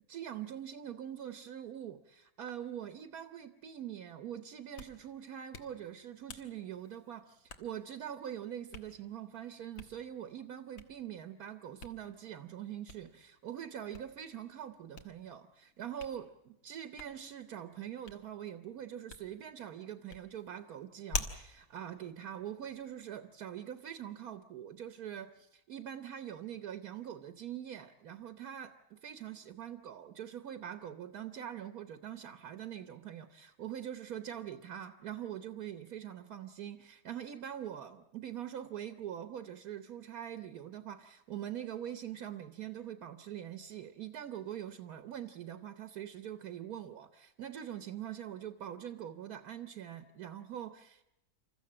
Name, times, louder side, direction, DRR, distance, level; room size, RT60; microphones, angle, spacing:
voice 1, 0.1-51.0, right 10 dB, 75° right, 9 dB, 1.5 m, -43 dB
Hands, 4.5-23.0, left 3 dB, 60° left, 1.9 m, -49 dB
27.0 x 14.0 x 8.7 m, 0.87 s
omnidirectional pair, 1.6 m